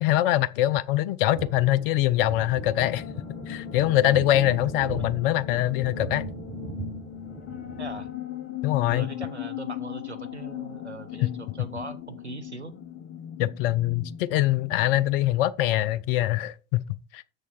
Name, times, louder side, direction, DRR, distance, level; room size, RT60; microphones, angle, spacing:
voice 1, 0.0-3.0 3.5-6.2 8.6-9.1 11.2-11.3 13.4-16.8 17.1-17.2, left 14 dB, 55° left, 0.5 m, -23 dB
sound 1, 1.3-8.1, right 5 dB, 65° right, 3.2 m, -39 dB
sound 2, 2.8-15.3, left 11 dB, 35° left, 1.2 m, -38 dB
voice 2, 7.8-8.1 8.9-12.8, right 3 dB, 90° right, 0.8 m, -40 dB
6.9 x 6.4 x 4.4 m
figure-of-eight pair, 65°, 33 cm